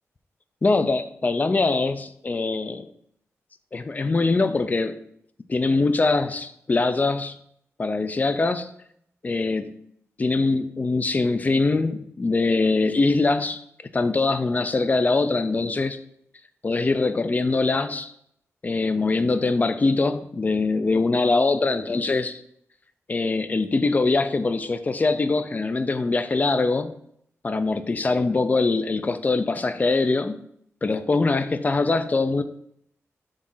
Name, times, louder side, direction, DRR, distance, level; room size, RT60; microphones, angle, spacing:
voice 1, 0.6-2.9 3.7-5.0 5.5-7.4 7.8-8.7 9.2-9.7 10.2-13.6 13.9-16.0 16.6-18.1 18.6-22.4 23.1-27.0 27.4-30.5 30.8-32.4, left 3 dB, 30° left, 11 dB, 0.5 m, -23 dB
6.3 x 3.7 x 5.5 m, 0.70 s
wide cardioid pair, 115°, 5 cm